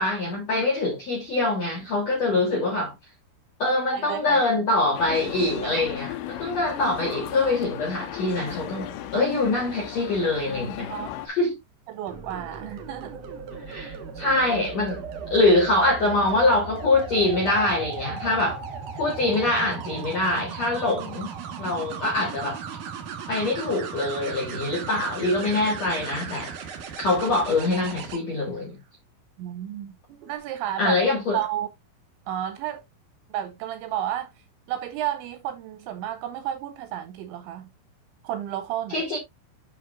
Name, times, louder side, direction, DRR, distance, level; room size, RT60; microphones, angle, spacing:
voice 1, 0.0-2.9 3.6-10.9 11.3-11.5 13.7-15.0 15.3-18.6 19.0-21.3 21.6-22.6 23.3-26.5 27.0-28.8 30.8-31.4 38.9-39.2, left 2 dB, 60° left, 1.7 m, -24 dB
voice 2, 3.6-4.4 5.6-5.8 10.9-11.1 11.9-13.2 29.4-29.9 30.3-31.0 31.3-31.7 32.3-32.8 33.3-34.3 34.7-37.7 38.2-39.0, right 11 dB, 80° right, 2.7 m, -31 dB
sound 1, 5.0-11.3, left 12 dB, 85° left, 3.4 m, -36 dB
sound 2, 12.1-28.2 30.1-30.4, right 6 dB, 65° right, 2.1 m, -37 dB
8.2 x 6.7 x 2.5 m
omnidirectional pair, 5.9 m